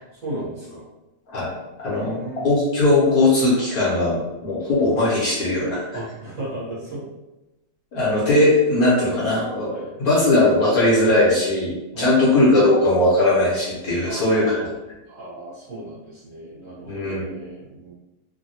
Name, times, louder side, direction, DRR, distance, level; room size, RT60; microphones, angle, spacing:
voice 1, 0.1-0.9 1.9-2.7 5.9-7.0 9.7-9.9 11.9-12.3 14.0-14.7 15.1-17.9, right 1 dB, 55° right, -8 dB, 1.1 m, -35 dB
voice 2, 1.3-2.2 2.4-5.8 7.9-9.7 10.0-14.6 16.9-17.2, left 2 dB, 60° left, -7 dB, 1.2 m, -19 dB
3.3 x 2.2 x 2.7 m, 1.0 s
omnidirectional pair, 2.1 m